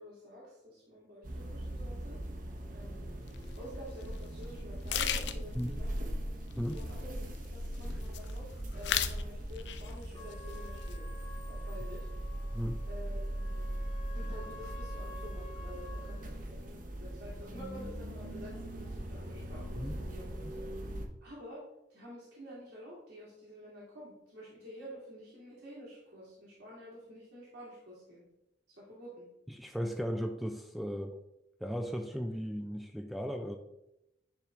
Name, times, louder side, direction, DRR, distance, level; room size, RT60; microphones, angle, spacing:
voice 1, 0.0-2.2 2.7-3.1 3.5-6.1 6.7-7.1 7.4-11.1 11.5-12.1 12.8-13.8 14.1-20.6 21.2-21.6 21.9-28.2 28.7-29.3, equal, 85° right, -8 dB, 2.2 m, -49 dB
sound 1, 1.2-21.1, right 1 dB, 50° right, 0.8 m, -40 dB
sound 2, 3.3-3.4 4.0-4.2 4.4-4.5 4.9-5.6 6.5-7.5 7.7-8.4 8.7-9.2 9.6-10.0 10.3-11.0, left 9 dB, 75° left, 0.4 m, -35 dB
Trumpet, 10.1-16.3, left 3 dB, 35° left, 1.4 m, -51 dB
voice 2, 29.5-31.2 31.6-33.6, equal, ahead, 5 dB, 0.3 m, -36 dB
10.0 x 3.4 x 3.7 m, 0.89 s
head